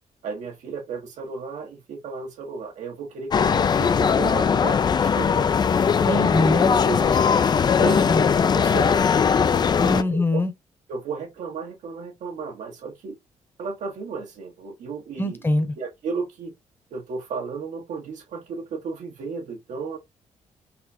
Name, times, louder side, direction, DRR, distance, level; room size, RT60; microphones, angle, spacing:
voice 1, 0.2-5.5 6.1-7.2 7.7-8.1 8.4-9.1 9.9-10.4 10.9-13.2 13.6-15.4 15.8-16.5 16.9-20.0, right 5 dB, 80° right, 1.5 m, -34 dB
sound 1, 3.3-10.0, left 6 dB, 35° left, 0.4 m, -20 dB
voice 2, 6.0-6.7 7.8-8.3 9.8-10.5 15.2-15.8, left 2 dB, 15° left, 1.0 m, -23 dB
4.2 x 2.4 x 4.3 m
cardioid pair, 110°, 12 cm